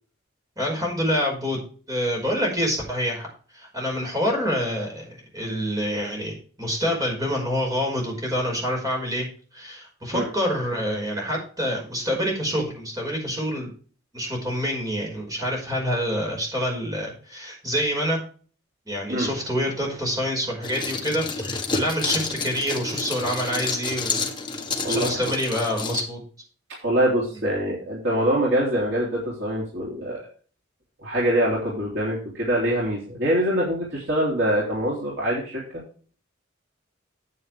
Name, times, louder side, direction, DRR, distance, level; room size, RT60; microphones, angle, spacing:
voice 1, 0.6-1.6 1.9-3.3 3.5-9.3 9.5-13.7 14.1-18.2 18.9-24.2 24.9-26.2, equal, 20° right, 0 dB, 5.3 m, -27 dB
sound 1, 20.6-26.0, left 4 dB, 25° left, 1.5 m, -29 dB
voice 2, 24.8-25.3 26.8-30.3 31.0-35.8, right 1 dB, 60° right, -5 dB, 3.4 m, -24 dB
9.4 x 9.1 x 3.5 m, 0.40 s
head